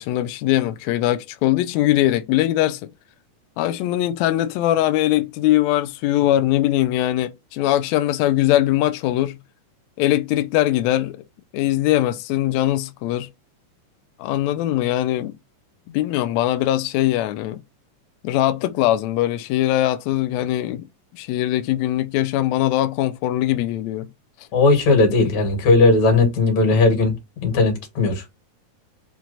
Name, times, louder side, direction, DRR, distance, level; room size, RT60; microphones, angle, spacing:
voice 1, 0.0-2.9 3.6-9.4 10.0-11.2 11.5-13.3 14.2-15.3 15.9-17.6 18.2-20.8 21.1-24.1, left 14 dB, 85° left, 1.6 m, -21 dB
voice 2, 24.5-27.2 27.4-28.2, left 3 dB, 65° left, 2.8 m, -17 dB
6.0 x 2.2 x 3.9 m
omnidirectional pair, 3.6 m